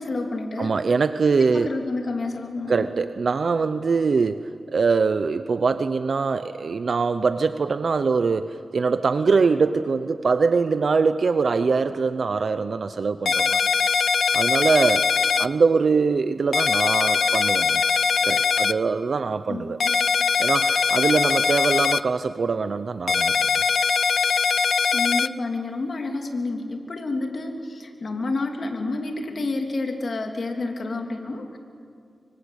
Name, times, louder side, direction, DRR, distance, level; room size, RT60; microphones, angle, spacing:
voice 1, 0.0-0.8 1.4-2.9 19.5-19.9 24.9-31.6, left 3 dB, 60° left, 3 dB, 3.1 m, -29 dB
voice 2, 0.6-1.7 2.7-13.6 14.3-15.1 15.4-17.8 18.2-19.8 20.4-23.3, right 4 dB, 65° right, 11 dB, 0.7 m, -23 dB
sound 1, 13.3-15.5 16.5-18.7 19.8-22.0 23.1-25.3, left 5 dB, 90° left, 0.6 m, -21 dB
26.0 x 23.5 x 8.4 m, 2.2 s
wide cardioid pair, 80°, 0 cm